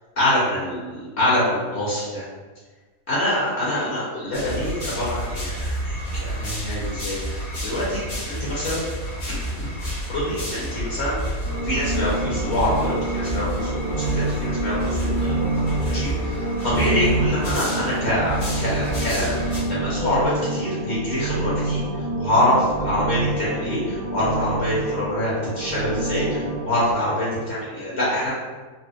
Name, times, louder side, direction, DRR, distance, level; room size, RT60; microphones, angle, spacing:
voice 1, 0.2-2.2 3.1-5.9 6.2-8.8 9.5-9.7 10.1-11.2 11.6-15.4 15.9-28.3, left 1 dB, 55° left, -8 dB, 0.9 m, -25 dB
sound 1, 4.3-19.6, equal, 80° left, 1.5 m, -29 dB
sound 2, 11.4-27.0, right 2 dB, 70° right, 1.0 m, -27 dB
4.0 x 2.0 x 2.4 m, 1.4 s
omnidirectional pair, 1.4 m